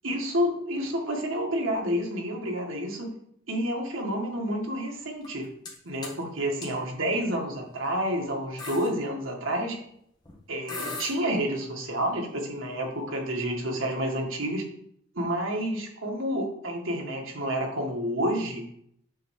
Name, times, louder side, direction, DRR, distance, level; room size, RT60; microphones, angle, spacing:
voice 1, 0.0-3.1 3.5-5.5 5.8-9.8 10.5-14.6 15.1-18.6, equal, 80° right, 0 dB, 1.8 m, -29 dB
sound 1, 5.2-5.7 6.0-6.2 6.6-6.7 7.6-7.8 8.1-8.2 8.6-8.9 10.3-10.4 10.7-11.1, left 3 dB, 20° left, 1.2 m, -37 dB
8.9 x 3.3 x 6.5 m, 0.70 s
head